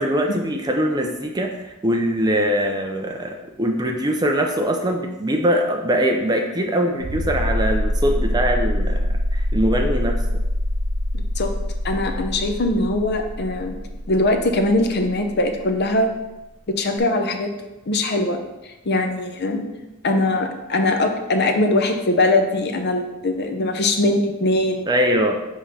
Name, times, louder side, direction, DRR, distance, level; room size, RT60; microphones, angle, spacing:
voice 1, 0.0-10.2 24.9-25.4, equal, 20° right, 3 dB, 0.5 m, -22 dB
sound 1, 7.0-15.5 17.0-17.1, equal, 35° right, 0.9 m, -24 dB
voice 2, 11.8-13.8 14.1-16.1 16.7-17.5 17.9-18.4 18.8-19.6 20.0-24.8, left 2 dB, 50° left, 5 dB, 0.7 m, -21 dB
5.1 x 3.6 x 5.5 m, 1.0 s
head